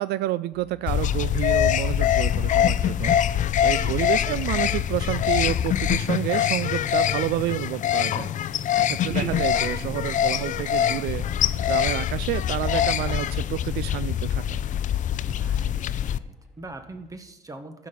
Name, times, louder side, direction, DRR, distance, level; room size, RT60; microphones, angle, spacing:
voice 1, 0.0-14.6, right 15 dB, 75° right, 16 dB, 0.4 m, -30 dB
sound 1, 0.5-17.2, equal, ahead, 1.3 m, -54 dB
sound 2, 0.9-16.2, left 10 dB, 50° left, 0.5 m, -24 dB
voice 2, 3.7-4.1 15.2-17.9, right 2 dB, 20° right, 7 dB, 1.4 m, -42 dB
sound 3, 9.1-13.2, right 3 dB, 40° right, 2.0 m, -38 dB
14.0 x 6.0 x 7.0 m, 0.95 s
cardioid pair, 110°, 17 cm